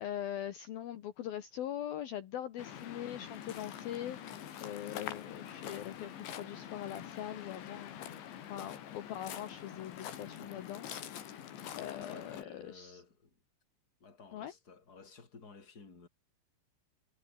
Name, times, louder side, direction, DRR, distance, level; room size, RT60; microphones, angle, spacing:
voice 1, 0.0-11.4 11.8-13.0 14.3-14.5, left 11 dB, 65° left, 3.1 m, -42 dB
Waves surf, 2.6-12.4, left 10 dB, 80° left, 4.9 m, -45 dB
voice 2, 12.0-13.4 14.0-16.1, left 5 dB, 20° left, 4.0 m, -54 dB
omnidirectional pair, 5.1 m